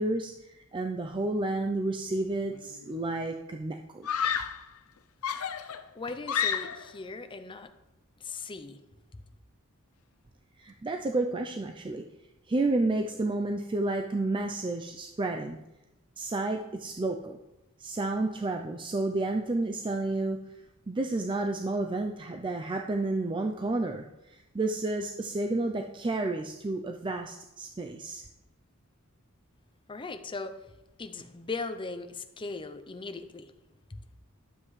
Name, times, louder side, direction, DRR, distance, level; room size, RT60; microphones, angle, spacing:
voice 1, 0.0-4.1 10.6-12.0 12.5-15.6 16.2-17.4 17.8-20.4 20.9-28.2, right 2 dB, 25° right, 4 dB, 0.4 m, -31 dB
Screaming, 2.5-3.0 4.0-4.7 5.2-7.0, left 8 dB, 75° left, 0.6 m, -31 dB
voice 2, 6.0-7.7 8.2-8.8 29.9-30.6 31.0-33.5 33.9-34.0, left 3 dB, 25° left, 8 dB, 0.6 m, -38 dB
12.0 x 7.6 x 3.2 m, 0.95 s
head